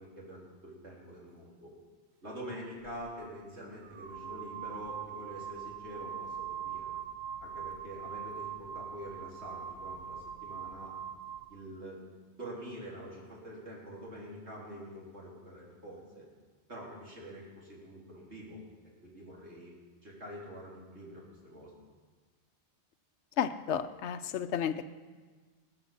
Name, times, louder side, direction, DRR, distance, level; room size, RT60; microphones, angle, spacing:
voice 1, 0.0-1.7 2.2-6.9 7.4-10.9 11.5-12.0 12.4-16.2 16.7-18.6 19.0-19.7 20.0-21.7, equal, 75° right, -4 dB, 3.9 m, -46 dB
sound 1, 2.8-3.0 3.8-11.5, right 8 dB, 50° right, 0.7 m, -42 dB
voice 2, 23.4-24.8, left 8 dB, 80° left, 12 dB, 0.9 m, -32 dB
20.0 x 7.3 x 7.2 m, 1.4 s
omnidirectional pair, 1.2 m